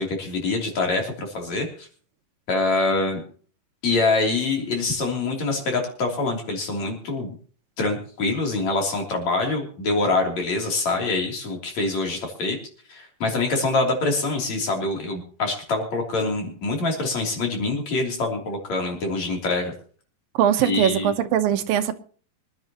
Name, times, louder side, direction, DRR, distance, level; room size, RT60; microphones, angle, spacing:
voice 1, 0.0-1.9 2.5-3.2 3.8-7.3 7.8-12.6 12.9-19.7 20.6-21.1, left 3 dB, 55° left, 4.4 m, -25 dB
voice 2, 20.3-22.0, right 10 dB, 85° right, 2.7 m, -21 dB
24.5 x 11.0 x 3.0 m
omnidirectional pair, 3.9 m